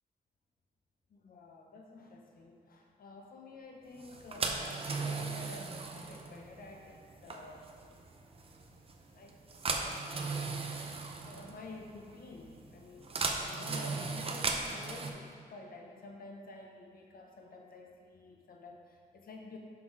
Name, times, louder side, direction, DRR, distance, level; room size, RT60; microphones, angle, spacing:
voice 1, 1.1-7.7 9.1-9.4 9.6-10.2 11.3-19.6, left 2 dB, 75° left, 1 dB, 0.9 m, -50 dB
sound 1, 4.0-15.1, right 3 dB, 40° right, 0.6 m, -38 dB
6.1 x 5.7 x 4.7 m, 2.1 s
wide cardioid pair, 155°, 15 cm